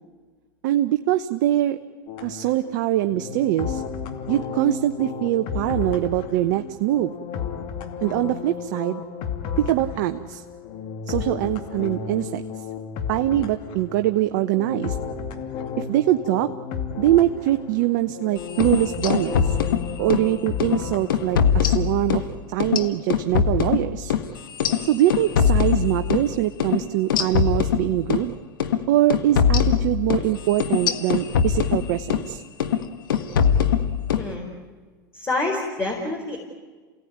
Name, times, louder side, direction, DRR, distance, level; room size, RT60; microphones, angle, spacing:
voice 1, 0.6-1.8 2.2-3.8 4.3-7.1 8.0-9.0 9.6-10.4 11.1-12.4 13.1-15.0 15.8-16.5 17.0-19.6 20.0-22.2 22.5-24.1 24.9-28.4 28.9-32.4, right 14 dB, 65° right, 8 dB, 0.9 m, -23 dB
sound 1, 2.1-21.7, left 6 dB, 55° left, 2.4 m, -33 dB
sound 2, 18.5-20.3 20.6-20.8 21.1-22.3 22.6-26.3 26.6-26.8 27.1-28.3 28.6-28.8 29.1-32.3 32.6-32.8 33.1-34.3, left 8 dB, 80° left, 1.7 m, -22 dB
voice 2, 35.1-36.4, left 2 dB, 20° left, 0 dB, 4.7 m, -27 dB
28.0 x 18.0 x 9.6 m, 1.4 s
hypercardioid pair, 100°, 11 cm